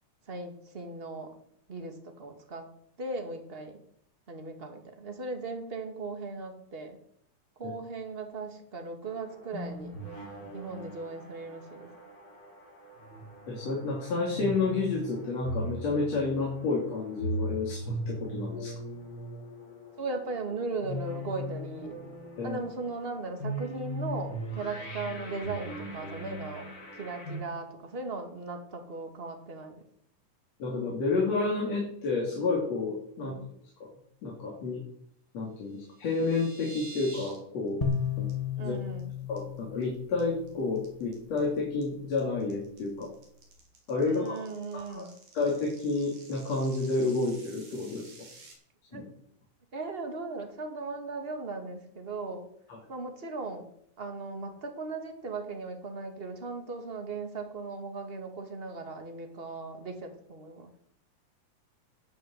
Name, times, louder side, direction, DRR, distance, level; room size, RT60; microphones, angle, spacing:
voice 1, 0.3-1.4 1.7-2.7 3.0-3.8 4.3-7.0 7.6-10.0 10.5-11.9 20.0-22.0 22.4-29.8 33.2-33.5 38.6-39.1 44.0-45.1 48.9-49.1 49.7-52.5 52.9-53.7 54.0-60.7, right 3 dB, 20° right, 5 dB, 2.0 m, -38 dB
sound 1, 9.0-27.4, right 1 dB, 30° left, 3.2 m, -39 dB
voice 2, 13.5-18.8 22.4-22.6 30.6-33.3 33.8-33.9 34.2-34.8 35.3-37.8 38.2-38.3 38.6-38.7 39.3-43.1 43.9-45.1 45.3-48.1 48.9-49.0, left 3 dB, 60° left, -2 dB, 3.8 m, -30 dB
sound 2, 35.7-37.4 37.7-37.9 38.3-38.4 38.7-39.0 39.4-39.8 40.2-48.5, right 3 dB, 75° right, 5.2 m, -50 dB
sound 3, 37.8-41.1, left 6 dB, 15° left, 1.6 m, -34 dB
14.5 x 8.7 x 8.0 m, 0.71 s
omnidirectional pair, 3.3 m